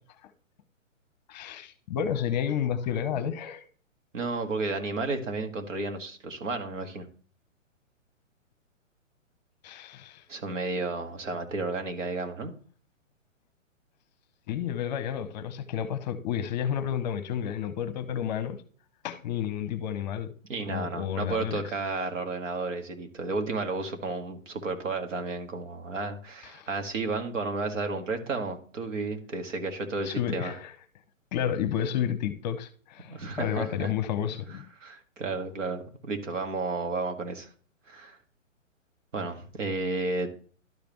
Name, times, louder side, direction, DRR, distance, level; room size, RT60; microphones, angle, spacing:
voice 1, 1.3-3.7 9.6-10.2 14.5-18.6 19.0-20.3 20.7-21.6 26.5-26.7 30.0-30.7 31.3-34.7, left 9 dB, 35° left, 0.8 m, -31 dB
voice 2, 4.1-7.1 10.3-12.5 20.5-30.5 33.1-33.9 34.8-37.5 37.9-38.2 39.1-40.3, right 3 dB, 70° right, 2.0 m, -32 dB
12.0 x 5.1 x 3.0 m
hypercardioid pair, 135°, 39 cm